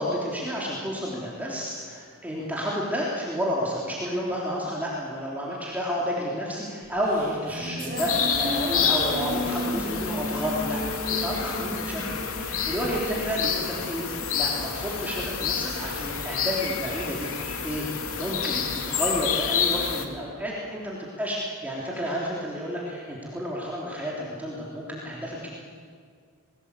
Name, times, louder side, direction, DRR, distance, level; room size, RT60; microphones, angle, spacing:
voice 1, 0.0-10.8 11.1-17.3 17.6-17.8 18.2-25.5, equal, 10° right, -5 dB, 3.4 m, -31 dB
sound 1, 6.8-13.4, equal, 40° right, 7.0 m, -34 dB
sound 2, 8.0-20.1, left 7 dB, 80° left, 2.5 m, -29 dB
29.5 x 21.5 x 8.3 m, 2.1 s
head